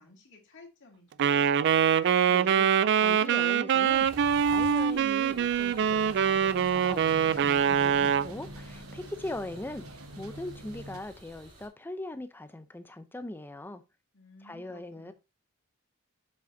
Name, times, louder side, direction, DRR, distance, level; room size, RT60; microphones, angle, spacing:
voice 1, 0.0-1.8 14.1-15.1, left 3 dB, 55° left, 2.2 m, -55 dB
Wind instrument woodwind instrument, 1.2-8.3, right 8 dB, 55° right, 0.3 m, -24 dB
voice 2, 2.3-4.1 4.4-9.9 10.2-13.8 14.4-15.1, left 1 dB, 10° left, 0.5 m, -41 dB
sound 1, 3.8-11.7, equal, 30° right, 2.4 m, -51 dB
sound 2, 5.9-11.0, right 1 dB, 80° right, 1.0 m, -46 dB
7.5 x 5.8 x 2.7 m
head